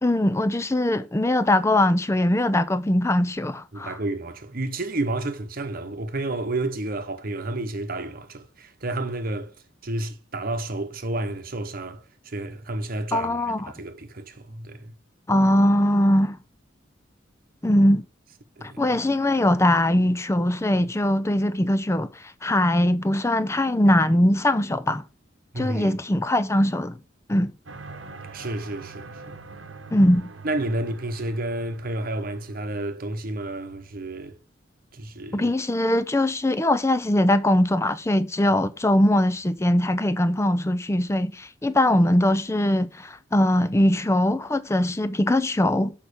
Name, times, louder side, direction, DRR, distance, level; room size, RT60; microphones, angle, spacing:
voice 1, 0.0-4.0 13.1-13.7 15.3-16.4 17.6-18.1 18.6-25.0 25.6-27.0 27.3-27.5 29.9-30.3 35.3-45.9, left 1 dB, 15° left, 0.5 m, -21 dB
voice 2, 3.7-9.5 9.8-14.9 18.6-18.8 25.5-26.0 28.3-29.4 30.4-34.4 34.9-35.5, right 2 dB, 50° right, 1.0 m, -31 dB
sound 1, 27.7-32.9, right 3 dB, 75° right, 1.0 m, -43 dB
6.6 x 5.7 x 5.0 m
head